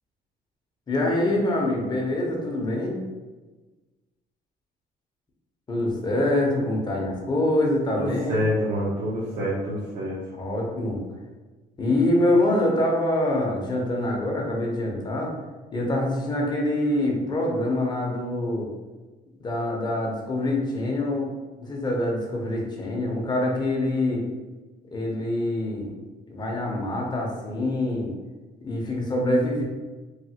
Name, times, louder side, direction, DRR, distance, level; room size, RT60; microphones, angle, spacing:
voice 1, 0.9-3.0 5.7-8.5 10.3-11.0 11.8-15.3 15.7-18.7 19.4-21.3 21.6-24.3 24.9-25.9 26.3-28.1 28.6-29.6, left 1 dB, 25° left, -1 dB, 0.7 m, -25 dB
voice 2, 8.0-10.2, equal, 70° right, -7 dB, 0.8 m, -27 dB
3.1 x 2.1 x 2.8 m, 1.2 s
cardioid pair, 110°, 17 cm